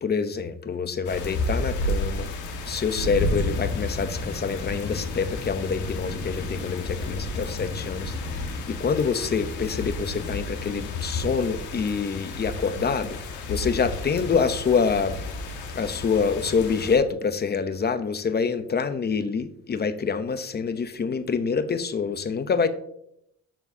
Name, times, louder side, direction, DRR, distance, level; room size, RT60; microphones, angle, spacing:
voice 1, 0.0-2.3 2.7-13.2 13.5-15.2 15.7-22.7, left 5 dB, 35° left, 11 dB, 0.8 m, -26 dB
sound 1, 1.0-17.0, left 2 dB, 85° left, 1.4 m, -31 dB
13.0 x 4.5 x 2.8 m, 0.74 s
cardioid pair, 90°, 30 cm